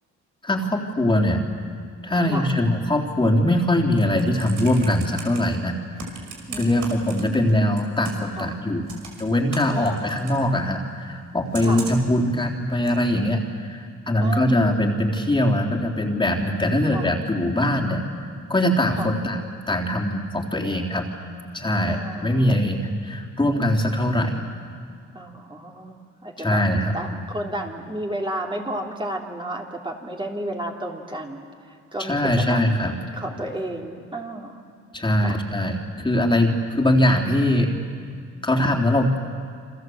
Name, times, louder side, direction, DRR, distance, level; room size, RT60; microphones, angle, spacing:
voice 1, 0.4-1.4 2.0-5.8 6.6-8.9 9.2-18.0 18.5-19.4 19.7-21.1 21.5-24.3 26.4-26.9 32.0-32.9 34.9-37.7 38.4-39.3, left 1 dB, 15° left, 0 dB, 3.5 m, -22 dB
Computer keyboard, 4.0-5.4 6.0-7.5 7.8-8.4 8.9-10.4 11.5-12.1 12.9-13.0, right 5 dB, 75° right, 5.6 m, -37 dB
voice 2, 6.5-7.3 8.3-8.6 9.7-10.2 11.6-11.9 14.2-14.6 16.9-17.1 19.0-19.1 21.9-22.5 25.1-26.6 26.9-32.9 33.1-34.6 35.2-35.4, right 1 dB, 15° right, 0 dB, 3.5 m, -32 dB
28.5 x 25.5 x 7.9 m, 2.2 s
cardioid pair, 90°, 30 cm